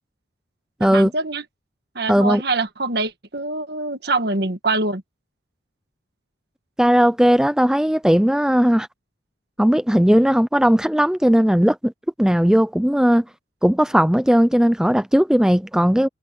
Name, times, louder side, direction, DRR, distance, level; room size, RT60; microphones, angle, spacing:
voice 1, 0.8-1.4 2.0-5.0, right 3 dB, 55° right, 1.6 m, -24 dB
voice 2, 2.1-2.4 6.8-8.9 9.6-11.9 12.2-13.2 13.6-16.1, equal, 5° right, 0.4 m, -17 dB
head